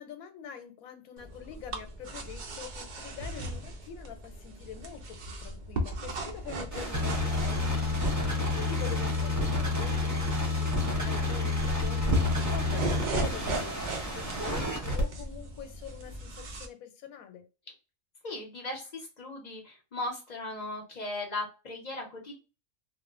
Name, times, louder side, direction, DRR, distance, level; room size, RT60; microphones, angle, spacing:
voice 1, 0.0-17.5, left 9 dB, 90° left, 7 dB, 1.1 m, -45 dB
sound 1, 1.2-16.7, right 1 dB, 85° right, 0.4 m, -37 dB
sound 2, 6.7-15.0, left 2 dB, 20° right, 0.5 m, -29 dB
voice 2, 18.2-22.3, left 2 dB, 40° left, 0 dB, 0.7 m, -37 dB
2.8 x 2.0 x 2.4 m, 0.31 s
omnidirectional pair, 1.4 m